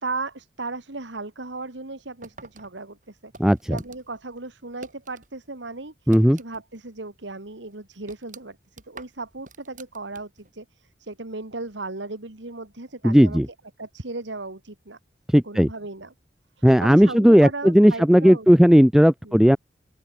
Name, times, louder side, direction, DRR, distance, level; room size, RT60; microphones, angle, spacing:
voice 1, 0.0-3.3 3.7-13.4 13.8-15.0 15.4-16.1 16.6-18.5 19.2-19.5, right 3 dB, 90° right, 2.3 m, -36 dB
sound 1, 2.2-5.3 5.6-6.8 7.1-7.2 7.7-10.5, right 3 dB, 45° right, 3.6 m, -47 dB
voice 2, 3.4-3.8 6.1-6.4 13.0-13.5 15.3-15.7 16.6-19.6, equal, 5° right, 0.4 m, -15 dB
open air
head